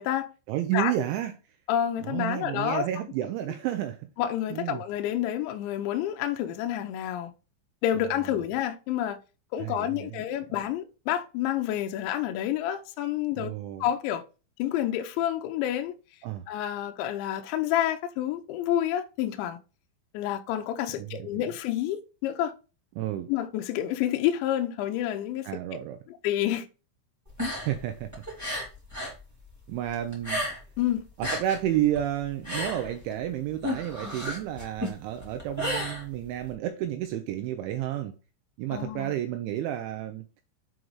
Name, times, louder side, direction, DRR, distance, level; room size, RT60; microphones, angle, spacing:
voice 1, 0.5-1.3 2.0-4.1 4.5-4.8 8.4-8.5 9.6-10.2 13.4-13.9 16.2-16.4 21.0-21.3 23.0-23.3 25.4-26.0 27.6-28.1 29.7-30.5 31.2-38.2 38.6-40.3, right 12 dB, 85° right, 2.8 m, -31 dB
voice 2, 1.7-2.8 4.2-7.3 7.8-9.2 9.5-13.5 13.8-14.2 14.6-16.0 16.5-19.6 20.1-22.5 23.3-25.5 26.1-26.7 30.8-31.1 38.7-39.1, left 11 dB, 85° left, 2.7 m, -29 dB
sound 1, 27.3-29.2 29.5-30.8 31.1-36.5, left 1 dB, 10° right, 0.8 m, -33 dB
7.8 x 3.9 x 4.7 m
omnidirectional pair, 5.9 m